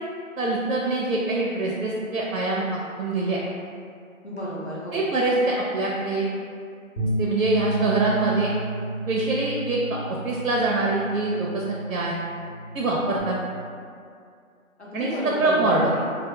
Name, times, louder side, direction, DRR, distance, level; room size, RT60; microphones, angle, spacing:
voice 1, 0.4-2.6 3.0-3.4 4.9-6.3 7.2-8.5 9.1-10.0 10.2-12.2 12.7-13.4 14.9-15.9, right 2 dB, 80° right, -3 dB, 0.5 m, -24 dB
voice 2, 4.2-5.1 14.8-16.0, equal, 55° left, -6 dB, 0.6 m, -32 dB
Bass guitar, 7.0-13.2, right 2 dB, 75° left, 1.0 m, -32 dB
2.2 x 2.0 x 2.8 m, 2.3 s
figure-of-eight pair, 180°, 41 cm